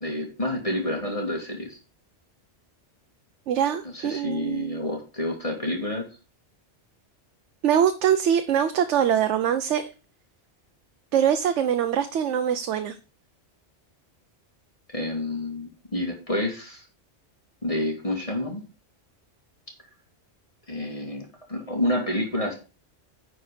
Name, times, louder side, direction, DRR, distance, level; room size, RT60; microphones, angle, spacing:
voice 1, 0.0-1.8 3.8-6.1 14.9-16.8 17.6-18.6 20.7-22.5, left 1 dB, 30° left, 2.1 m, -29 dB
voice 2, 3.5-4.8 7.6-9.9 11.1-13.0, right 9 dB, 85° right, 1.0 m, -23 dB
10.0 x 4.5 x 5.0 m
omnidirectional pair, 1.2 m